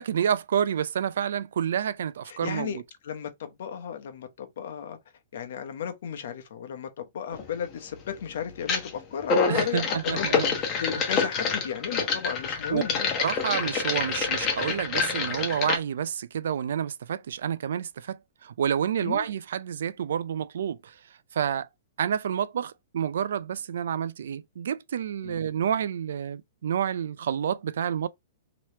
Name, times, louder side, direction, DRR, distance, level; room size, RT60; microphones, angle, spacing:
voice 1, 0.0-2.8 9.5-10.5 12.7-12.8 13.2-20.9 21.3-21.7 22.0-28.1, right 8 dB, 75° right, 0.4 m, -29 dB
voice 2, 2.3-5.0 5.3-13.2 19.0-19.3 25.2-25.4, left 8 dB, 65° left, 0.8 m, -35 dB
sound 1, 7.3-7.5 8.6-8.9 9.2-15.8, left 5 dB, 30° left, 0.9 m, -27 dB
3.2 x 2.9 x 2.9 m
hypercardioid pair, 145°, 0 cm